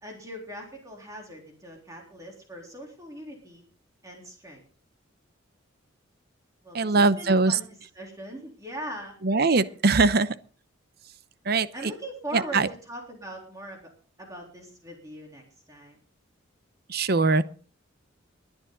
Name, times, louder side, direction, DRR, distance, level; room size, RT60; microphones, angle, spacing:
voice 1, 0.0-3.6 4.0-4.6 6.6-7.7 7.9-9.2 9.5-9.7 11.7-13.9 14.2-16.0, equal, 15° right, 0 dB, 3.6 m, -41 dB
voice 2, 6.7-7.6 9.2-10.3 11.5-11.9 12.3-12.7 16.9-17.4, right 3 dB, 50° right, 14 dB, 0.8 m, -22 dB
22.0 x 10.0 x 3.9 m, 0.39 s
head